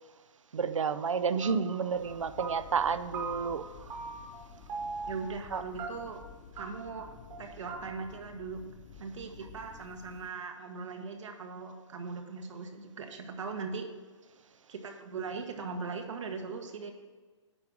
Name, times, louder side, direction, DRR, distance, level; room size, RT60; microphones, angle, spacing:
voice 1, 0.5-3.7 5.5-5.6, right 6 dB, 90° right, 12 dB, 0.6 m, -30 dB
sound 1, 1.4-1.8 2.0-2.9 3.1-3.6 3.9-4.4 4.7-5.2 5.8-6.2 6.6-6.7 7.0-7.1 7.3-7.4 7.7-7.8, right 5 dB, 20° right, 1.1 m, -39 dB
sound 2, 2.0-10.3, left 6 dB, 35° left, 1.0 m, -52 dB
voice 2, 5.1-6.2 6.5-7.1 7.4-8.6 9.0-13.9 14.7-16.9, right 4 dB, 70° right, 4 dB, 1.2 m, -39 dB
9.5 x 3.6 x 6.2 m, 1.4 s
hypercardioid pair, 145°, 16 cm